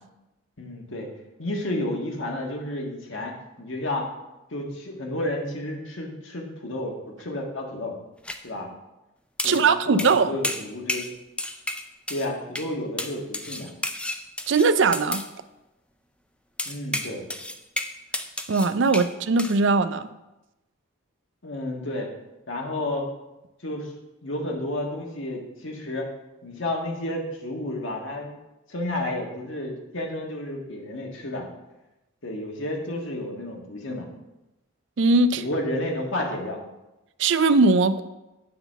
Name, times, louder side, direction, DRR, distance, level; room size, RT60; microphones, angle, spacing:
voice 1, 0.6-1.1 1.4-3.3 3.6-4.1 4.5-8.0 8.4-8.7 9.4-11.1 12.1-13.7 16.6-17.2 21.4-22.1 22.5-23.1 23.6-23.9 24.2-26.1 26.4-28.3 28.7-31.5 32.2-34.1 35.4-36.6, left 1 dB, 65° left, 1 dB, 1.6 m, -31 dB
sound 1, 8.2-8.4 9.4-9.7 10.0-10.2 10.4-11.1 11.4-12.3 12.6-12.7 13.0-15.3 16.6-19.1 19.4-19.6, left 2 dB, 5° left, 0.3 m, -31 dB
voice 2, 9.4-10.4 14.5-15.2 18.5-20.1 35.0-35.4 37.2-38.0, right 3 dB, 60° right, 12 dB, 0.4 m, -20 dB
9.4 x 4.0 x 6.8 m, 0.98 s
head